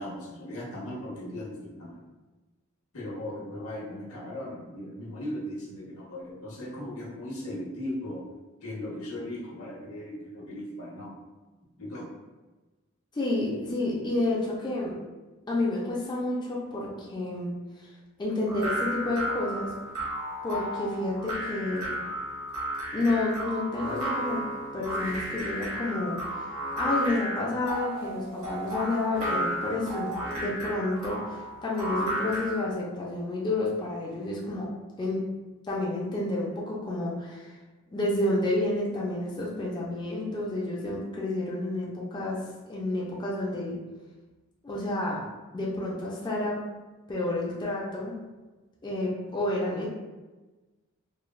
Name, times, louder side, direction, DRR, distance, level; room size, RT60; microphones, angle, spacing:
voice 1, 0.0-2.0 2.9-8.2 8.6-11.1 11.8-12.1, left 1 dB, 80° left, -4 dB, 0.9 m, -37 dB
voice 2, 13.1-14.9 15.5-17.5 18.2-19.7 20.4-21.9 22.9-24.4 24.7-26.4 26.8-34.7 35.0-35.2 35.7-37.5 37.9-42.4 42.7-43.8 44.6-45.2 45.5-46.6 47.1-48.2 48.8-49.9, left 2 dB, 20° left, -5 dB, 0.4 m, -30 dB
sound 1, 18.5-32.7, equal, 70° right, 0.9 m, -33 dB
3.1 x 2.2 x 2.3 m, 1.2 s
head